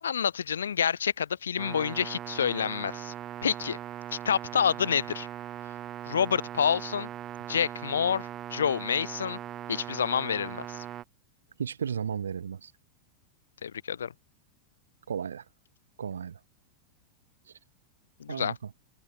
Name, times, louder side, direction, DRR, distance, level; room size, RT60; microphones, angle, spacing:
voice 1, 0.0-3.1 3.4-3.8 4.1-5.3 6.1-7.1 7.5-9.4 9.7-10.8 13.6-14.1 18.2-18.5, left 8 dB, 70° left, 0.4 m, -28 dB
sound 1, 1.6-11.0, right 12 dB, 30° right, 1.0 m, -40 dB
voice 2, 11.6-12.7 15.1-15.4 16.0-16.4 18.3-18.7, right 7 dB, 70° right, 0.4 m, -34 dB
figure-of-eight pair, 90°, 0 cm